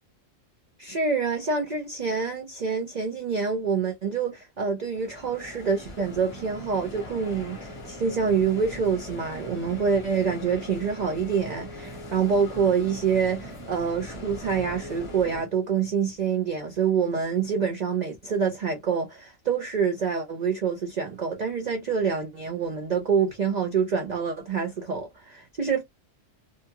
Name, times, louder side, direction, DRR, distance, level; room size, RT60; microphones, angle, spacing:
voice 1, 0.8-25.8, right 6 dB, 65° right, 0.4 m, -26 dB
sound 1, 4.9-15.4, left 1 dB, 25° left, 0.8 m, -40 dB
2.7 x 2.2 x 2.8 m
omnidirectional pair, 1.4 m